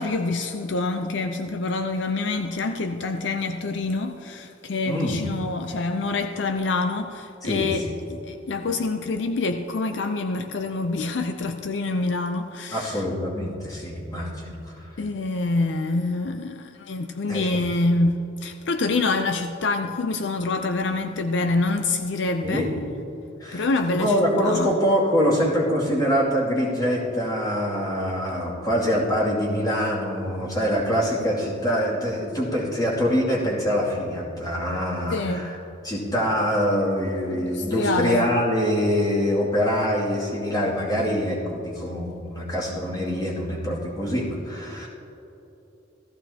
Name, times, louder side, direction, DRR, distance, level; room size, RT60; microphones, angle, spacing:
voice 1, 0.0-7.9 8.3-13.0 15.0-22.7 23.5-24.8 35.1-35.5 37.3-38.3, left 3 dB, 70° left, 0.5 m, -26 dB
voice 2, 4.8-5.2 7.4-7.8 12.7-14.9 17.3-17.6 22.4-22.7 23.4-23.7 23.9-35.6 35.8-44.9, equal, 20° left, 2.4 m, -24 dB
16.0 x 14.5 x 2.8 m
head